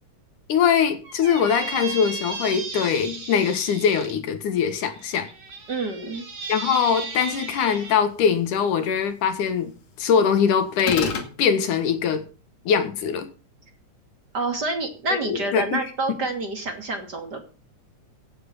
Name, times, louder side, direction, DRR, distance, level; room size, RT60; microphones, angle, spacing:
voice 1, 0.5-5.3 6.5-9.7 10.0-12.3 12.7-13.3 15.3-15.8, left 7 dB, 80° left, 3.2 m, -22 dB
Squeak, 1.0-4.1 4.9-8.0, right 4 dB, 55° right, 5.1 m, -35 dB
voice 2, 5.7-6.2 14.3-17.4, right 2 dB, 35° right, 3.1 m, -28 dB
sound 1, 10.8-11.3, left 6 dB, 60° left, 3.4 m, -26 dB
16.5 x 9.7 x 5.7 m
omnidirectional pair, 3.6 m